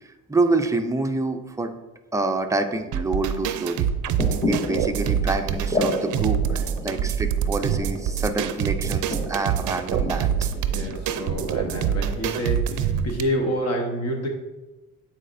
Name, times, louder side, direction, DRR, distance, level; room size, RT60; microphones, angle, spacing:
voice 1, 0.3-1.7 2.1-3.9 4.5-10.5, right 2 dB, 10° right, 5 dB, 0.4 m, -27 dB
sound 1, 2.9-13.2, right 8 dB, 65° right, 0.5 m, -25 dB
sound 2, 4.0-12.3, left 1 dB, 15° left, 1.2 m, -32 dB
voice 2, 10.7-14.3, equal, 50° left, 1 dB, 1.2 m, -28 dB
8.7 x 4.2 x 2.6 m, 1.1 s
cardioid pair, 105°, 33 cm